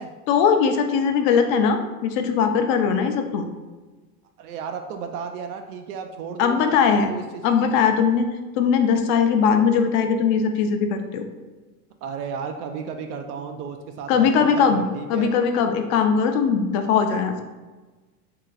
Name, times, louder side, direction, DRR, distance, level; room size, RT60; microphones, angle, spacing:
voice 1, 0.3-3.5 6.4-7.1 7.4-8.3 8.6-11.3 14.1-14.8 15.1-17.4, left 6 dB, 50° left, 6 dB, 0.6 m, -20 dB
voice 2, 4.4-7.4 12.0-15.3, right 6 dB, 85° right, 5 dB, 0.5 m, -34 dB
3.1 x 2.9 x 3.8 m, 1.3 s
supercardioid pair, 110°, 44 cm